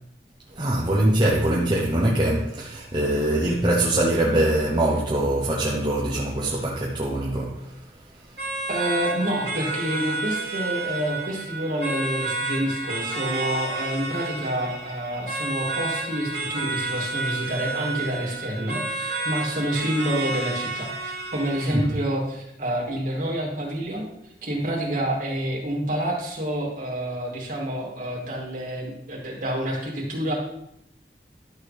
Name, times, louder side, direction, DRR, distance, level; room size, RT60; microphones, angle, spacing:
voice 1, 0.5-7.8 21.7-21.9, right 1 dB, 25° right, 0.9 m, -23 dB
sound 1, 8.4-22.0, right 2 dB, 70° right, 2.5 m, -31 dB
voice 2, 8.7-24.1 24.4-30.3, right 1 dB, 50° right, 2.8 m, -28 dB
12.0 x 6.4 x 3.4 m
head